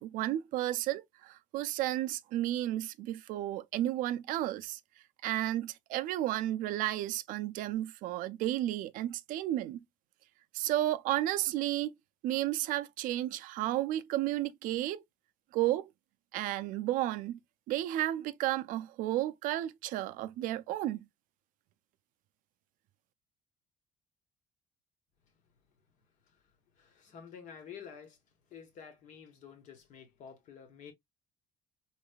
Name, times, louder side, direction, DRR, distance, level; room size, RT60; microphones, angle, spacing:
voice 1, 0.0-4.8 5.2-9.8 10.5-11.9 12.2-15.0 15.5-15.9 16.3-17.4 17.7-21.1, right 14 dB, 80° right, 0.4 m, -32 dB
voice 2, 26.3-28.2 28.5-30.9, left 7 dB, 65° left, 1.2 m, -50 dB
4.0 x 3.2 x 2.2 m
cardioid pair, 120°, 14 cm